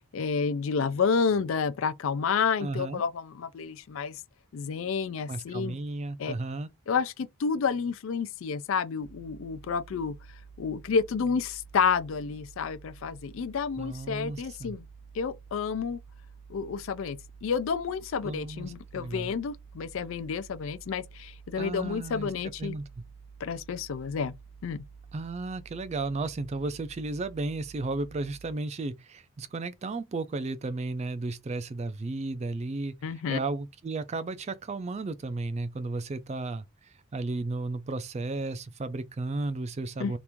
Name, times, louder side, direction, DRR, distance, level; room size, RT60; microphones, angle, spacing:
voice 1, 0.1-4.2 4.5-5.7 6.2-6.3 6.9-10.2 10.6-14.9 15.1-16.0 16.5-22.8 23.4-24.3 24.6-24.8 33.0-33.4 40.0-40.1, left 5 dB, 60° left, 0.3 m, -30 dB
voice 2, 2.6-3.0 5.3-6.7 13.8-14.8 18.2-19.3 21.6-22.3 22.6-22.8 25.1-40.2, right 2 dB, 30° right, 0.3 m, -34 dB
sound 1, 9.0-28.5, right 5 dB, 90° right, 0.8 m, -50 dB
2.9 x 2.5 x 3.4 m
head